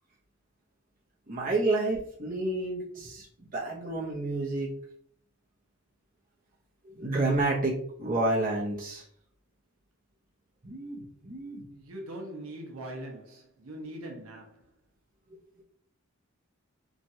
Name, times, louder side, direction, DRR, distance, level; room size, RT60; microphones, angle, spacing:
voice 1, 1.3-4.7 6.8-9.0 10.6-11.7, right 2 dB, 40° right, 0.8 m, -30 dB
voice 2, 11.7-14.6, right 1 dB, 85° right, 0.7 m, -41 dB
3.1 x 2.4 x 2.7 m
head